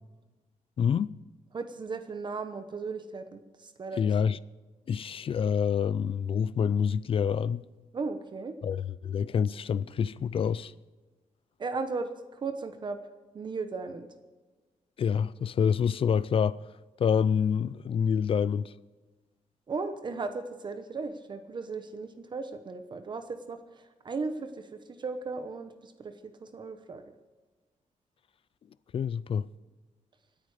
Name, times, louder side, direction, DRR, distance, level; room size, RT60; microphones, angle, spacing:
voice 1, 0.8-1.1 4.0-4.4 4.9-7.6 8.6-10.7 15.0-16.6 17.0-18.7 28.9-29.4, left 7 dB, 45° left, 0.4 m, -27 dB
voice 2, 1.5-4.0 7.9-8.6 11.6-13.0 13.3-14.1 19.7-24.7 25.0-27.1, right 4 dB, 35° right, 0.9 m, -36 dB
26.5 x 8.9 x 4.9 m
wide cardioid pair, 175°, 13 cm